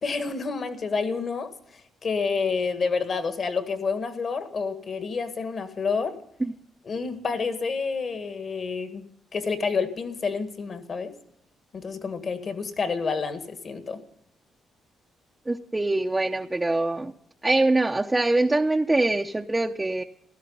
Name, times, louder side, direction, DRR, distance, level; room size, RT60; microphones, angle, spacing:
voice 1, 0.0-6.2 6.8-9.1 9.3-11.1 11.7-14.0, left 5 dB, 50° left, 9 dB, 1.8 m, -29 dB
voice 2, 15.5-17.1 17.4-20.0, right 2 dB, 15° right, 2 dB, 0.7 m, -23 dB
16.0 x 12.5 x 5.5 m, 0.70 s
cardioid pair, 90°, 0 cm